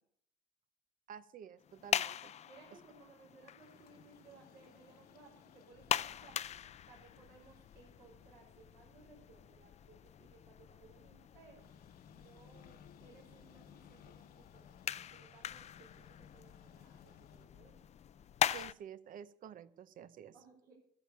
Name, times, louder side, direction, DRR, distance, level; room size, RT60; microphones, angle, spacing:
voice 1, 1.1-2.3 18.5-20.3, right 9 dB, 55° right, 16 dB, 0.8 m, -50 dB
sound 1, 1.6-18.7, left 10 dB, 40° left, 0.4 m, -42 dB
voice 2, 2.4-6.4 6.9-11.7 12.1-17.8 18.5-18.7 20.3-20.7, right 4 dB, 70° right, -5 dB, 4.8 m, -62 dB
sound 2, 3.6-17.5, left 8 dB, 65° left, 1.1 m, -63 dB
14.0 x 7.6 x 7.1 m, 0.66 s
cardioid pair, 110°, 17 cm